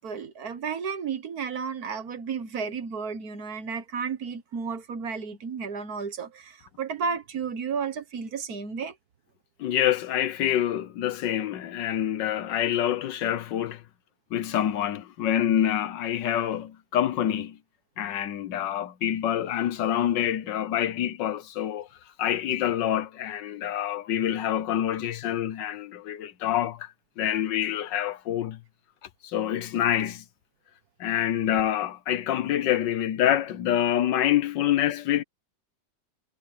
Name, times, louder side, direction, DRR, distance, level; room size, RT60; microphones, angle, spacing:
voice 1, 0.0-9.0, right 5 dB, 60° right, 1.8 m, -33 dB
voice 2, 9.6-13.8 14.3-17.6 18.0-21.9 22.2-28.6 29.2-30.2 31.0-35.2, left 11 dB, 90° left, 1.6 m, -26 dB
omnidirectional pair, 1.9 m